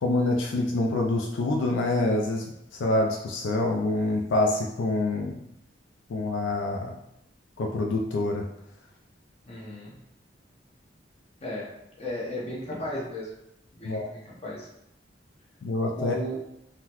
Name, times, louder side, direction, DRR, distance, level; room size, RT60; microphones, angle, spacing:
voice 1, 0.0-2.4 2.8-5.4 6.1-6.9 7.6-8.4 13.8-14.1 15.6-16.1, left 2 dB, 80° left, 1 dB, 0.4 m, -26 dB
voice 2, 9.5-9.9 11.4-11.7 12.0-13.3 13.7-14.7 16.0-16.4, left 1 dB, 35° left, -4 dB, 0.9 m, -35 dB
3.7 x 2.1 x 2.9 m, 0.81 s
head